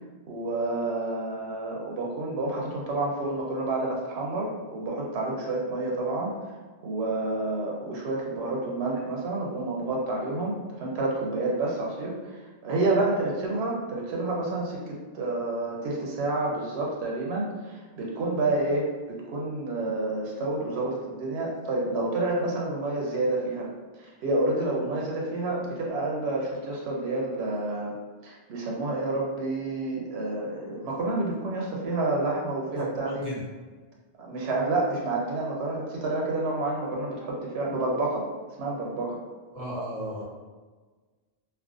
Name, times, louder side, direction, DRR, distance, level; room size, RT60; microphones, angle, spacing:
voice 1, 0.3-6.3 6.8-23.7 24.0-27.9 28.2-33.3 34.2-38.2 38.6-39.2, right 2 dB, 85° right, -2 dB, 0.8 m, -29 dB
voice 2, 32.8-33.4 39.5-40.2, right 1 dB, 50° right, -5 dB, 0.5 m, -36 dB
2.4 x 2.1 x 2.4 m, 1.3 s
omnidirectional pair, 1.0 m